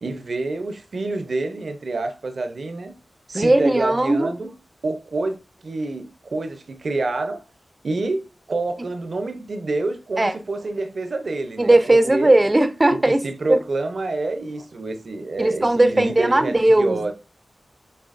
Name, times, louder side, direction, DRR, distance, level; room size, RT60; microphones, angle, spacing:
voice 1, 0.0-2.9 3.3-4.5 4.8-5.4 5.6-7.4 7.8-12.3 12.9-17.1, right 2 dB, 70° right, 0.7 m, -27 dB
voice 2, 3.3-4.3 10.2-10.4 11.6-13.2 13.5-13.6 15.4-17.1, right 1 dB, 30° right, 0.5 m, -17 dB
6.7 x 2.9 x 2.5 m
cardioid pair, 50°, 0 cm